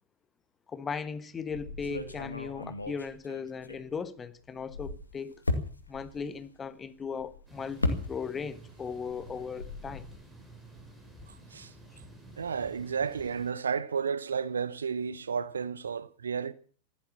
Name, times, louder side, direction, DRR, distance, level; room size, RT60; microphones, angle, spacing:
voice 1, 0.7-5.4 5.9-10.1, left 5 dB, 20° left, 1.4 m, -37 dB
sound 1, 1.5-4.2 4.5-8.6 8.9-10.2, left 2 dB, 80° left, 2.2 m, -36 dB
sound 2, 7.5-13.5, right 2 dB, 10° right, 6.2 m, -52 dB
voice 2, 12.4-16.5, right 6 dB, 70° right, 1.0 m, -32 dB
15.5 x 12.0 x 7.2 m
figure-of-eight pair, 90°, 0 cm